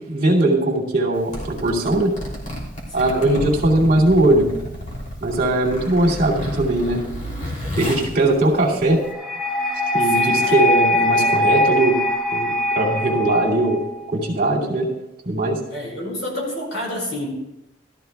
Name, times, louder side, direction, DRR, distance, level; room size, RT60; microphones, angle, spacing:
voice 1, 0.0-2.1 2.9-4.5 5.2-7.0 7.8-9.0 9.9-12.0 12.3-13.8 14.1-14.9 15.2-15.6, right 1 dB, 50° right, -5 dB, 2.5 m, -19 dB
Zipper (clothing), 1.1-9.1, equal, 40° left, 2.9 m, -31 dB
voice 2, 2.9-3.2 10.1-10.6 15.7-17.3, left 1 dB, 80° left, -2 dB, 4.8 m, -29 dB
sound 1, 9.0-14.0, left 1 dB, ahead, 1.0 m, -21 dB
17.0 x 13.0 x 2.3 m, 0.89 s
head